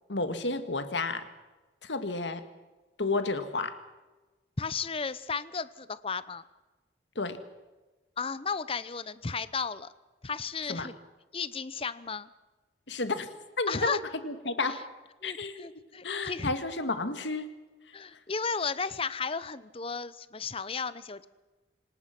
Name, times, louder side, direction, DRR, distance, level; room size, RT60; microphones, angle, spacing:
voice 1, 0.1-1.3 1.8-2.5 3.0-3.8 7.2-7.4 10.7-10.9 12.9-13.3 13.6-14.8 15.2-17.5, left 3 dB, 80° left, 9 dB, 1.9 m, -31 dB
voice 2, 4.6-6.4 8.2-9.9 10.2-10.9 11.3-12.3 13.7-14.0 14.6-14.8 15.2-16.5 17.9-21.3, left 5 dB, 30° left, 16 dB, 0.8 m, -34 dB
27.0 x 18.5 x 6.0 m, 1.2 s
head